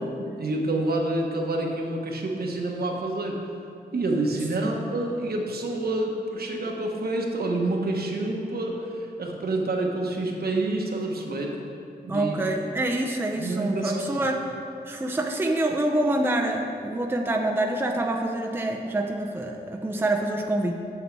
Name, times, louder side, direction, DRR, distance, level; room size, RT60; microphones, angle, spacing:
voice 1, 0.0-3.4 3.9-11.6 12.0-12.3 13.4-14.2, right 2 dB, 65° right, 0 dB, 1.1 m, -28 dB
voice 2, 12.1-14.4 14.9-20.7, right 1 dB, 15° right, 1 dB, 0.6 m, -26 dB
8.1 x 6.5 x 4.5 m, 2.6 s
wide cardioid pair, 90°, 17 cm